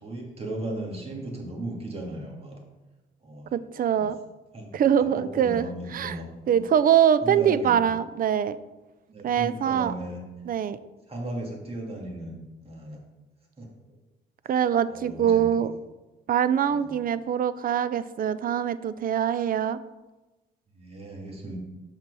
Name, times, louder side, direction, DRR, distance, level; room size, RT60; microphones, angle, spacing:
voice 1, 0.0-2.5 3.2-3.5 4.0-4.1 4.5-6.7 7.2-7.9 9.1-10.2 11.1-13.0 13.6-13.7 14.9-15.6 16.7-16.9 20.7-21.6, right 1 dB, 30° right, -1 dB, 2.2 m, -36 dB
voice 2, 3.5-4.2 4.7-5.7 5.9-6.2 6.5-8.6 9.2-9.9 10.5-10.8 14.5-15.7 16.3-19.8, right 9 dB, 45° right, 15 dB, 0.4 m, -23 dB
6.0 x 4.5 x 6.1 m, 1.1 s
cardioid pair, 90°, 20 cm